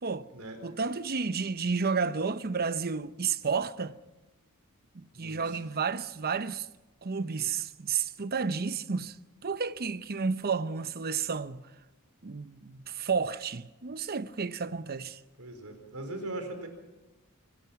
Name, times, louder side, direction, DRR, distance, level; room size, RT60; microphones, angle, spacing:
voice 1, 0.6-3.9 4.9-6.7 7.0-9.1 9.4-11.6 12.2-15.2, right 5 dB, 45° right, 0.8 m, -31 dB
voice 2, 5.1-5.6 15.4-16.7, right 2 dB, 70° right, 4.6 m, -40 dB
26.0 x 21.0 x 6.0 m
head